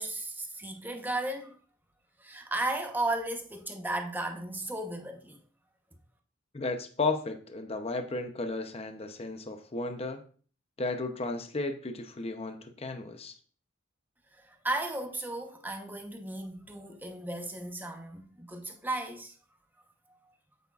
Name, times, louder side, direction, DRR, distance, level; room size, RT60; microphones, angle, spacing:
voice 1, 0.0-1.6 2.2-5.4 14.3-19.3, right 2 dB, 10° right, 0.9 m, -35 dB
voice 2, 6.5-10.2 10.8-13.4, left 3 dB, 30° left, 0.7 m, -34 dB
8.2 x 8.1 x 2.4 m
head